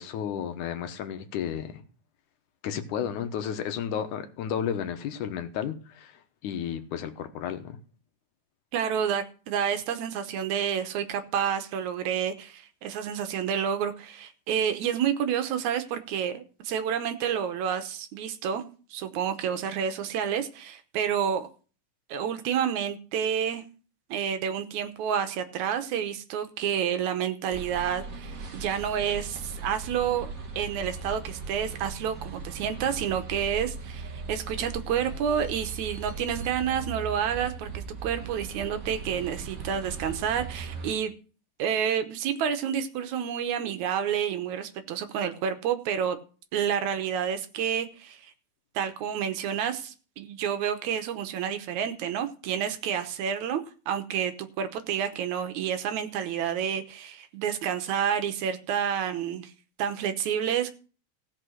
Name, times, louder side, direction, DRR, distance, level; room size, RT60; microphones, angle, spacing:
voice 1, 0.0-1.8 2.6-7.8, left 8 dB, 75° left, 2.5 m, -33 dB
voice 2, 8.7-21.5 22.1-23.6 24.1-30.3 30.6-41.1 41.6-46.2 46.5-48.3 48.8-59.5 59.8-60.7, right 8 dB, 70° right, 2.2 m, -29 dB
sound 1, 27.5-40.9, right 4 dB, 50° right, 1.0 m, -39 dB
16.0 x 5.7 x 6.3 m
omnidirectional pair, 3.6 m